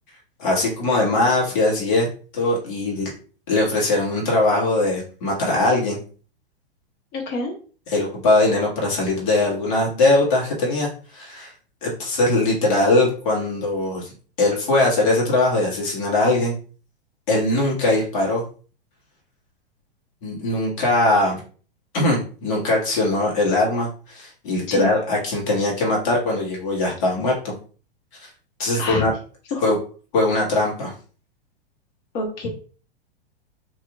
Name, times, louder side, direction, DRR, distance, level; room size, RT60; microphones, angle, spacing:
voice 1, 0.4-2.1 2.3-3.1 3.5-6.0 7.9-11.5 11.8-14.1 14.4-16.6 17.3-18.4 20.2-21.4 21.9-27.5 28.2-28.3 28.6-29.1 29.6-29.8 30.1-30.9, left 2 dB, 55° left, -2 dB, 1.6 m, -21 dB
voice 2, 7.1-7.5 24.7-24.9 28.8-29.1 29.5-29.6 32.1-32.5, left 2 dB, 40° left, 1 dB, 1.1 m, -27 dB
2.9 x 2.9 x 2.4 m, 0.39 s
hypercardioid pair, 105°, 30 cm